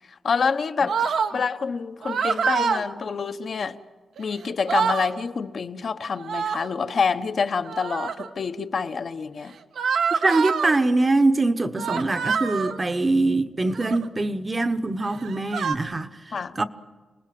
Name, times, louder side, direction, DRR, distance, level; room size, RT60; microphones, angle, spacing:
voice 1, 0.2-1.0 1.3-3.8 4.2-9.5 16.3-16.6, left 5 dB, 50° left, 1.0 m, -27 dB
sound 1, 0.9-1.3 2.0-2.8 4.2-4.3 4.5-5.1 6.2-6.7 7.6-8.3 9.8-10.7 11.8-12.8 13.7-14.1 15.0-15.7, right 6 dB, 85° right, 1.4 m, -26 dB
voice 2, 10.2-16.6, right 2 dB, 25° right, 1.0 m, -23 dB
28.0 x 20.0 x 7.7 m
wide cardioid pair, 140°, 0 cm